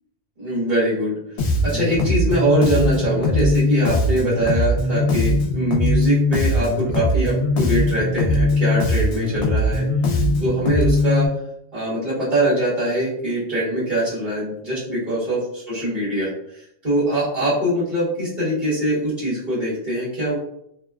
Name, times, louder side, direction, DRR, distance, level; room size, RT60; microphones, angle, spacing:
voice 1, 0.4-11.3 11.7-20.4, right 1 dB, 50° right, -11 dB, 1.3 m, -23 dB
Bass guitar, 1.4-11.3, left 1 dB, 85° left, 0.9 m, -20 dB
2.8 x 2.2 x 2.3 m, 0.74 s
omnidirectional pair, 1.1 m